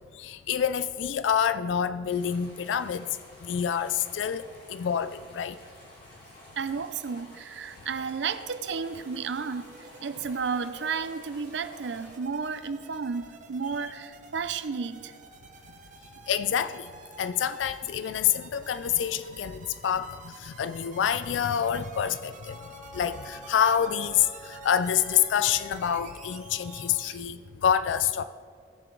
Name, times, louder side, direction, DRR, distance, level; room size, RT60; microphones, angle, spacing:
voice 1, 0.1-3.1 3.4-4.4 4.7-5.6 16.3-16.9 17.2-22.6 22.9-28.2, left 8 dB, 90° left, 14 dB, 0.4 m, -27 dB
sound 1, 2.1-12.2, equal, 50° left, 3.0 m, -52 dB
voice 2, 6.6-15.1, right 5 dB, 75° right, 13 dB, 0.5 m, -32 dB
sound 2, 8.7-27.2, right 4 dB, 40° right, 1.0 m, -51 dB
Wind instrument woodwind instrument, 22.5-27.1, equal, 30° left, 0.8 m, -47 dB
16.0 x 6.9 x 3.9 m, 2.1 s
head